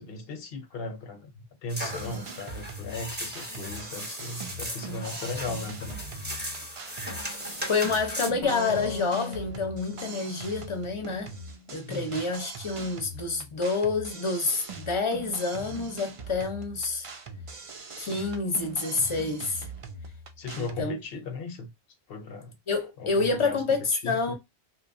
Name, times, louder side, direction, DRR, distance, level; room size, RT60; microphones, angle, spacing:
voice 1, 0.0-6.0 11.8-12.2 20.4-21.7 22.1-22.6 23.0-24.4, left 3 dB, 65° left, 0.7 m, -37 dB
sound 1, 1.7-8.3, equal, 10° right, 0.5 m, -37 dB
sound 2, 1.8-20.8, right 3 dB, 60° right, 0.3 m, -42 dB
voice 2, 7.7-11.3 11.7-17.1 18.0-19.7 20.6-21.0 22.7-24.4, left 4 dB, 40° left, 0.5 m, -28 dB
sound 3, 8.4-11.9, left 6 dB, 85° left, 1.0 m, -39 dB
2.7 x 2.3 x 2.4 m
omnidirectional pair, 1.2 m